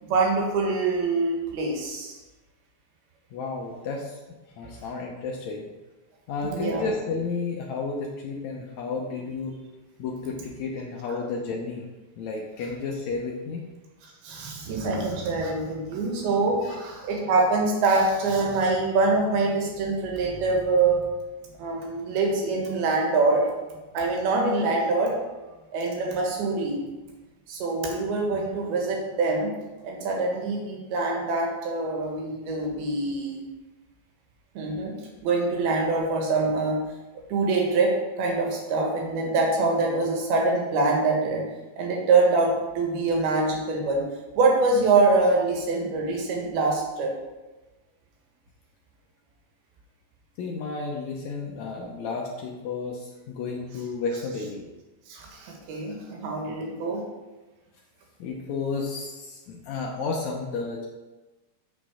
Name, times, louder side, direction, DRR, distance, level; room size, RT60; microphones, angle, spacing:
voice 1, 0.0-2.2 6.4-6.9 14.0-21.0 21.6-23.4 23.9-25.1 25.7-26.8 27.5-29.5 29.8-33.4 34.5-34.9 35.2-36.8 37.3-41.4 41.8-44.0 44.3-47.1 55.1-57.0, right 3 dB, 80° right, 0 dB, 3.4 m, -24 dB
voice 2, 3.3-4.2 4.6-5.7 6.3-9.6 10.0-11.9 12.2-13.6 16.6-16.8 50.4-54.6 56.5-56.7 58.2-60.9, left 4 dB, 85° left, 0 dB, 1.5 m, -32 dB
6.5 x 6.2 x 4.9 m, 1.1 s
omnidirectional pair, 4.3 m